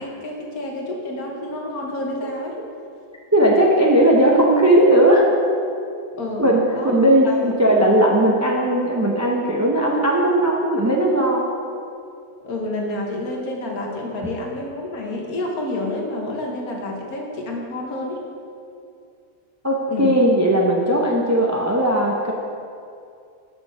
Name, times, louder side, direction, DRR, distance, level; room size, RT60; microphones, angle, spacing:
voice 1, 0.0-2.6 6.1-7.5 12.4-18.2 19.9-20.1, left 1 dB, 65° left, 0 dB, 1.6 m, -29 dB
voice 2, 3.3-5.2 6.4-11.5 19.6-22.3, right 1 dB, 25° right, -2 dB, 0.3 m, -17 dB
6.3 x 6.0 x 6.7 m, 2.5 s
omnidirectional pair, 1.7 m